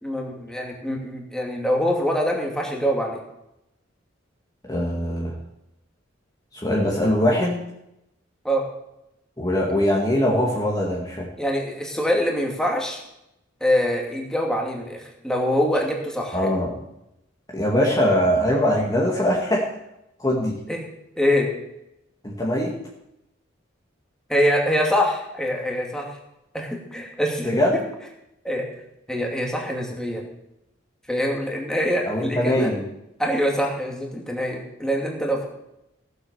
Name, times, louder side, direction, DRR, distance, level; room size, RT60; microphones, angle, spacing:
voice 1, 0.0-3.2 8.4-8.6 11.4-13.0 13.6-16.5 20.7-20.9 21.2-21.5 24.3-26.2 26.5-27.6 28.4-28.6 29.1-30.3 31.1-32.7 33.2-35.5, equal, 5° left, -1 dB, 2.7 m, -24 dB
voice 2, 4.7-5.3 6.5-7.6 9.4-11.3 16.3-16.7 17.5-19.7 20.2-20.6 22.2-22.7 27.4-27.8 32.0-32.8, left 1 dB, 20° left, -3 dB, 2.1 m, -22 dB
16.0 x 8.0 x 7.1 m, 0.85 s
head